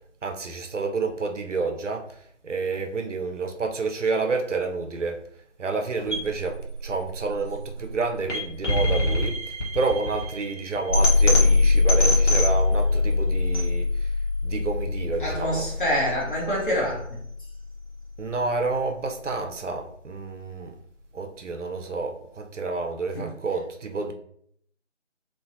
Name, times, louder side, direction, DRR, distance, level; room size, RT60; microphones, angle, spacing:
voice 1, 0.2-2.1 2.4-5.2 5.6-14.1 14.4-15.7 18.2-20.8 21.1-24.1, right 4 dB, 70° right, 5 dB, 0.6 m, -29 dB
sound 1, 6.1-18.1, left 3 dB, 70° left, 1.0 m, -23 dB
voice 2, 15.2-17.0 23.1-23.3, equal, 40° left, -4 dB, 0.8 m, -26 dB
3.1 x 2.1 x 2.5 m, 0.66 s
figure-of-eight pair, 170°, 38 cm